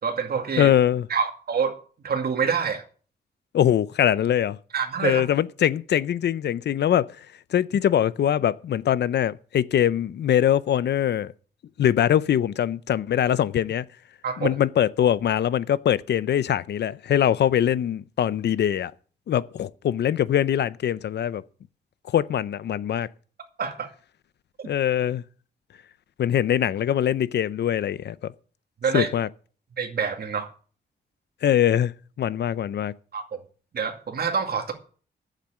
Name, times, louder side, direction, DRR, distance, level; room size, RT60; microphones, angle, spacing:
voice 1, 0.0-0.7 1.1-1.7 2.0-2.8 4.7-5.2 14.2-14.5 23.6-23.9 24.6-24.7 28.8-29.1 29.8-30.5 33.1-33.2 33.7-34.7, right 6 dB, 60° right, 2.3 m, -26 dB
voice 2, 0.6-1.1 3.5-4.6 5.0-7.1 7.5-11.3 11.8-13.8 14.4-18.9 19.3-21.4 22.1-23.1 24.6-25.2 26.2-28.3 28.9-29.3 31.4-31.9 32.2-32.9, left 10 dB, 75° left, 0.6 m, -22 dB
9.0 x 7.5 x 8.7 m
wide cardioid pair, 120°, 18 cm